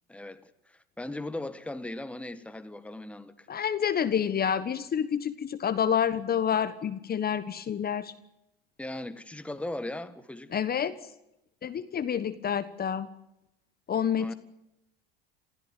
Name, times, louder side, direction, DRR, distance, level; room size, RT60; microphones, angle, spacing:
voice 1, 0.1-3.5 8.8-10.6 14.2-14.3, left 1 dB, 5° left, 1.6 m, -38 dB
voice 2, 3.5-8.1 10.5-11.0 11.6-13.1 13.9-14.3, left 8 dB, 30° left, 1.4 m, -28 dB
27.5 x 15.5 x 9.1 m
hypercardioid pair, 75°, 30 cm